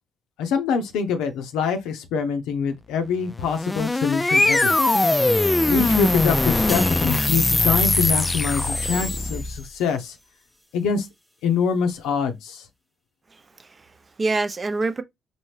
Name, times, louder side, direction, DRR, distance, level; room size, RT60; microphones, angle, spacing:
voice 1, 0.4-4.7 5.7-10.2 10.7-11.1 11.4-12.6, left 6 dB, 80° left, 0.6 m, -25 dB
sound 1, 3.3-9.7, left 2 dB, 20° left, 0.4 m, -21 dB
sound 2, 6.7-10.2 10.6-10.8, equal, ahead, 0.9 m, -40 dB
voice 2, 13.3-15.0, right 3 dB, 35° right, 0.6 m, -27 dB
4.4 x 2.7 x 3.2 m
hypercardioid pair, 50°, 0 cm